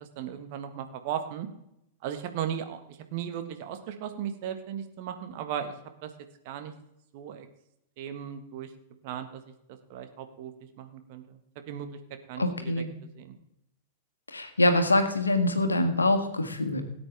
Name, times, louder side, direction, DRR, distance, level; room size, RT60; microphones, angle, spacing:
voice 1, 0.1-1.5 2.0-5.7 6.0-6.1 6.4-6.7 7.1-7.5 8.0-8.7 9.0-9.4 9.9-11.4 11.7-11.9 12.3-12.7 13.2-13.3, right 9 dB, 50° right, 7 dB, 1.6 m, -36 dB
voice 2, 12.4-12.9 14.3-16.8, left 1 dB, 80° left, 7 dB, 1.6 m, -24 dB
18.5 x 8.7 x 3.5 m, 0.80 s
figure-of-eight pair, 95°, 0 cm